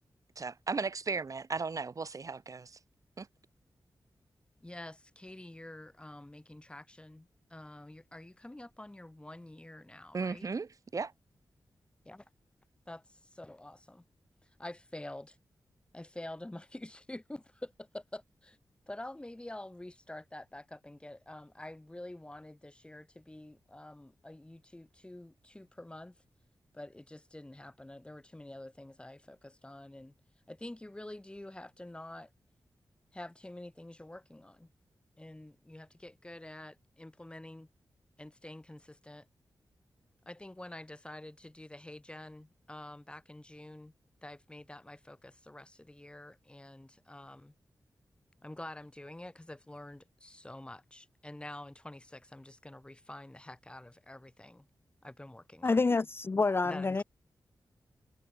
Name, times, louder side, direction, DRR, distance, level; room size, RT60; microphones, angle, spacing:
voice 1, 0.4-2.8 3.2-3.3 10.1-11.1, right 4 dB, 45° right, 2.5 m, -36 dB
voice 2, 4.6-10.5 12.0-12.2 12.9-14.0 14.6-15.4 15.9-18.6 18.9-26.1 26.7-30.1 30.5-32.3 33.1-34.7 35.2-37.7 38.2-39.3 40.3-43.9 44.2-47.5 48.4-54.6 55.0-55.8 56.6-57.0, left 1 dB, 15° left, 2.8 m, -47 dB
voice 3, 55.6-57.0, left 3 dB, 30° left, 0.6 m, -28 dB
wide cardioid pair, 115°, 8 cm